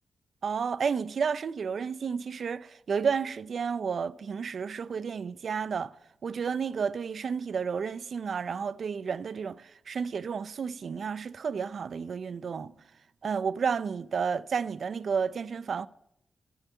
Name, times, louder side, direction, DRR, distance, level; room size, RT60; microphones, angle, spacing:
voice 1, 0.4-6.0 6.2-12.7 13.2-15.9, right 6 dB, 70° right, 0.4 m, -31 dB
14.5 x 5.5 x 9.0 m
cardioid pair, 75°, 0 cm